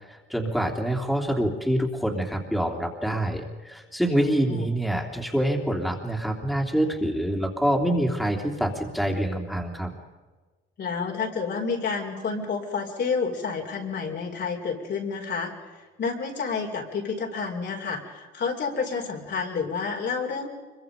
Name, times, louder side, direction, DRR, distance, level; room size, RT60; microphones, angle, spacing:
voice 1, 0.1-9.9, right 1 dB, ahead, 1 dB, 3.3 m, -26 dB
voice 2, 4.2-4.7 10.8-20.5, left 5 dB, 60° left, 1 dB, 4.7 m, -30 dB
25.0 x 23.0 x 5.3 m, 1.3 s
cardioid pair, 90°, 20 cm